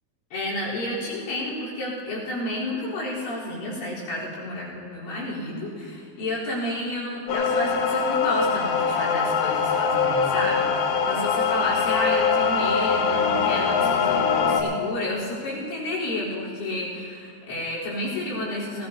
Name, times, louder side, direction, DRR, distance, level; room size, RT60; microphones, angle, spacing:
voice 1, 0.3-18.9, left 1 dB, 65° left, -8 dB, 6.1 m, -31 dB
sound 1, 7.3-14.6, left 5 dB, 90° left, 2.0 m, -23 dB
20.5 x 17.0 x 2.8 m, 2.5 s
omnidirectional pair, 5.4 m